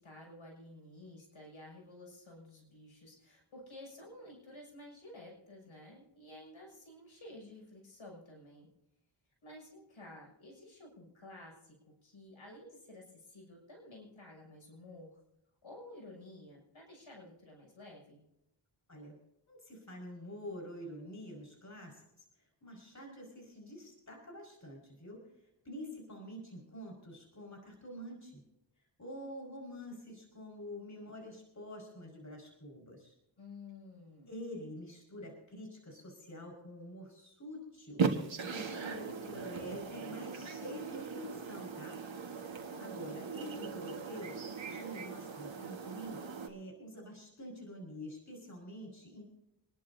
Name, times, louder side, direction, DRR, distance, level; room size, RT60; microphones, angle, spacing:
voice 1, 0.0-8.7 9.4-15.2 15.6-18.2 33.4-34.3 42.7-43.2, left 1 dB, 75° left, -1 dB, 6.6 m, -52 dB
voice 2, 19.5-25.3 25.6-28.4 29.0-33.1 34.3-42.1 42.8-49.2, equal, 35° left, 0 dB, 5.1 m, -47 dB
sound 1, 38.0-46.5, right 5 dB, 70° right, 1.7 m, -39 dB
27.0 x 11.5 x 2.7 m, 0.85 s
cardioid pair, 55°, 48 cm